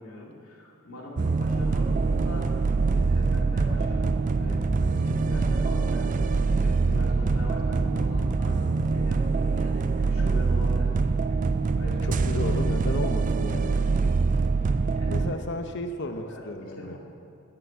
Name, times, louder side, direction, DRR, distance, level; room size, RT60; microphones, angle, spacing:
voice 1, 0.0-2.6 2.9-4.6 4.9-6.2 6.6-8.6 8.9-11.0 11.2-11.4 11.7-12.5 14.9-15.4 16.2-17.0, left 1 dB, 70° left, -4 dB, 2.5 m, -42 dB
sound 1, 1.2-15.3, right 4 dB, 35° right, 0.3 m, -24 dB
sound 2, 1.9-8.7, right 1 dB, 15° right, 0.8 m, -36 dB
voice 2, 12.0-13.8 15.0-17.0, left 2 dB, 50° left, 7 dB, 0.8 m, -34 dB
10.5 x 6.9 x 7.7 m, 2.5 s
head